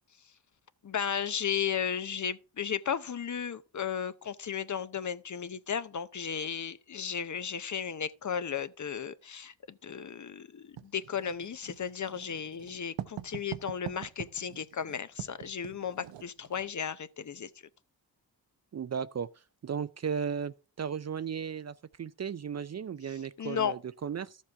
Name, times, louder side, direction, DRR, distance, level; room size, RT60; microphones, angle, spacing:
voice 1, 0.8-17.5 23.4-23.8, left 8 dB, 40° left, 0.7 m, -34 dB
Writing, 10.8-16.7, right 11 dB, 80° right, 0.8 m, -44 dB
voice 2, 18.7-19.3 19.6-24.4, right 7 dB, 40° right, 0.5 m, -35 dB
12.5 x 7.4 x 3.5 m
cardioid pair, 65°, 43 cm